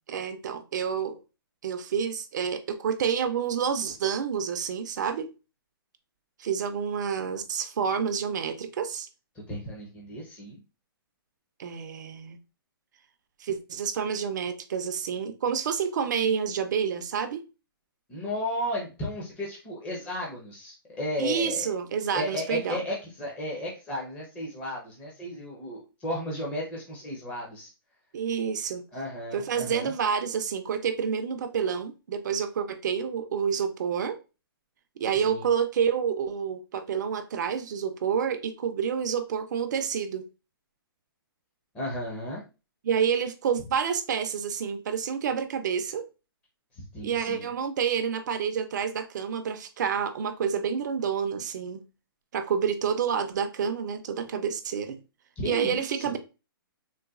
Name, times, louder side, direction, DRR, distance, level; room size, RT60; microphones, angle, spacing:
voice 1, 0.1-1.2 1.6-5.3 6.4-9.1 11.6-12.4 13.4-17.4 21.2-22.8 28.1-28.8 29.3-34.2 35.0-40.2 42.8-46.1 47.0-51.8 52.3-55.0 55.4-56.2, right 7 dB, 50° right, 0.4 m, -28 dB
voice 2, 9.3-10.6 18.1-21.7 22.1-27.7 28.9-29.9 35.2-35.5 41.7-42.4 46.8-47.5 55.4-56.2, left 1 dB, 10° left, 0.6 m, -34 dB
3.9 x 2.2 x 2.3 m
hypercardioid pair, 155°, 12 cm